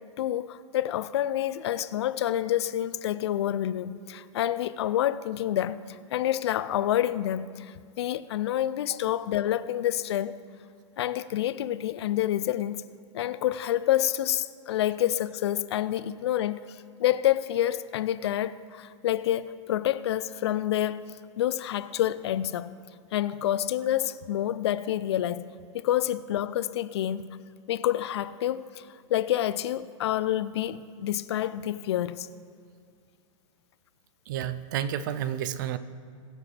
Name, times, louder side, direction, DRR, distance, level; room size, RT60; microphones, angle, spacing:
voice 1, 0.2-10.4 11.0-12.8 13.1-16.6 17.0-22.7 23.1-25.5 25.7-27.4 27.7-32.3, left 12 dB, 55° left, 0.4 m, -28 dB
voice 2, 34.3-35.8, right 10 dB, 40° right, 0.4 m, -30 dB
22.0 x 7.4 x 3.3 m
supercardioid pair, 170°, 16 cm